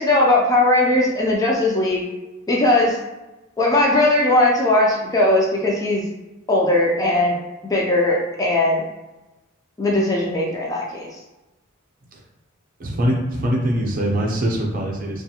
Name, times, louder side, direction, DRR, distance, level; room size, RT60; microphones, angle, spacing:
voice 1, 0.0-2.0 2.5-3.0 3.6-6.0 6.5-7.4 7.6-8.8 9.8-11.2, left 2 dB, 15° left, -3 dB, 0.3 m, -18 dB
voice 2, 12.8-15.2, equal, 40° right, -1 dB, 0.5 m, -22 dB
2.5 x 2.3 x 2.8 m, 1.0 s
head